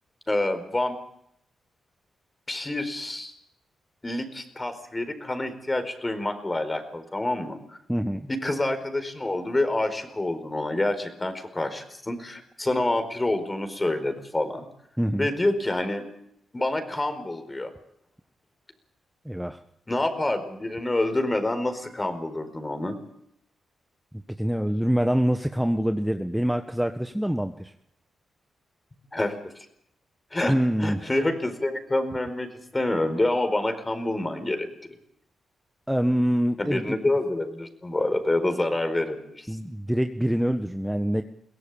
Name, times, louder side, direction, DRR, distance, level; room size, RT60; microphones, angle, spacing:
voice 1, 0.3-1.0 2.5-3.3 4.0-7.6 8.3-14.7 15.2-16.0 16.5-17.7 19.9-23.0 29.1-29.7 30.3-30.5 30.8-34.7 36.6-39.5, left 2 dB, 25° left, 9 dB, 4.7 m, -27 dB
voice 2, 7.9-8.2 15.0-15.3 19.2-19.6 24.4-27.7 30.5-31.0 35.9-37.0 39.5-41.2, equal, 5° right, 7 dB, 1.4 m, -25 dB
23.0 x 17.0 x 8.7 m, 0.72 s
supercardioid pair, 45°, 0 cm